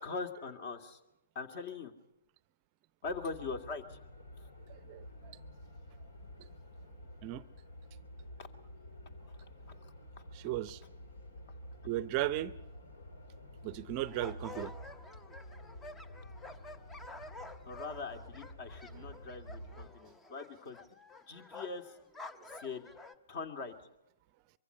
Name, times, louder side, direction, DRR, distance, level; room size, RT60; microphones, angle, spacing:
voice 1, 0.0-1.0 1.4-1.9 3.0-4.0 17.7-20.8 21.3-21.9 22.6-22.9 23.3-23.7, left 4 dB, 40° left, 7 dB, 2.2 m, -41 dB
sound 1, 3.0-19.9, left 1 dB, 65° left, 2.7 m, -50 dB
voice 2, 4.9-5.4 7.2-7.4 10.3-10.8 11.8-12.5 13.6-14.7, right 15 dB, 30° right, 15 dB, 0.7 m, -36 dB
sound 2, 14.1-23.1, left 2 dB, 10° left, 0.8 m, -50 dB
24.0 x 23.5 x 5.6 m, 0.91 s
figure-of-eight pair, 125°, 0 cm